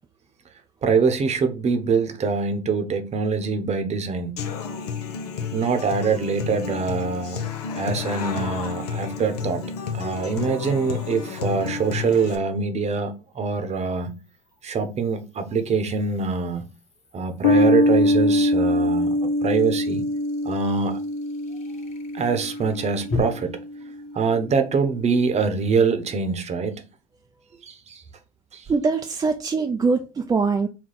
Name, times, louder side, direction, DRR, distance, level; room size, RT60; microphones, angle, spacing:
voice 1, 0.8-4.4 5.5-7.5 7.7-9.7 9.9-14.1 14.6-16.6 17.1-20.0 20.4-21.0 22.1-23.5 24.1-26.8 27.6-28.0 28.5-28.7, right 5 dB, 35° right, 0.9 m, -24 dB
Human voice / Acoustic guitar, 4.4-12.3, left 6 dB, 90° left, 0.6 m, -31 dB
sound 1, 9.5-9.6 13.0-23.2, left 4 dB, 40° left, 1.3 m, -41 dB
sound 2, 17.4-24.2, left 1 dB, 65° left, 1.0 m, -23 dB
voice 2, 28.7-30.7, right 4 dB, 20° right, 0.4 m, -22 dB
4.2 x 2.2 x 3.9 m
hypercardioid pair, 80°, 19 cm